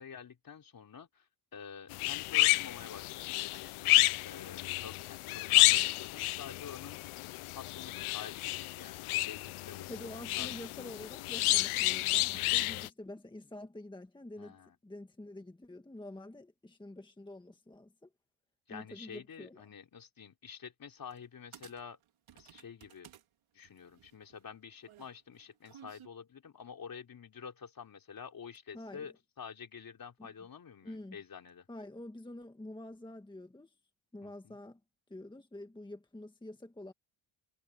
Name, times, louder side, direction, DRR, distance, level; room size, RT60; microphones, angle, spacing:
voice 1, 0.0-3.7 4.2-7.0 7.5-10.1 10.4-10.6 14.4-14.8 18.7-22.0 22.3-23.1 23.5-31.7 34.2-34.6, left 7 dB, 45° left, 3.4 m, -48 dB
sound 1, 1.9-12.9, left 19 dB, 75° left, 0.6 m, -30 dB
voice 2, 9.9-14.6 14.8-18.1 18.7-19.6 28.7-29.1 30.2-30.3 30.8-31.2 31.7-33.7 34.1-34.8 35.1-36.9, left 1 dB, 10° left, 1.6 m, -47 dB
sound 2, 21.1-21.2 21.5-23.2 23.6-26.1, right 10 dB, 75° right, 4.3 m, -56 dB
cardioid pair, 120°, 50 cm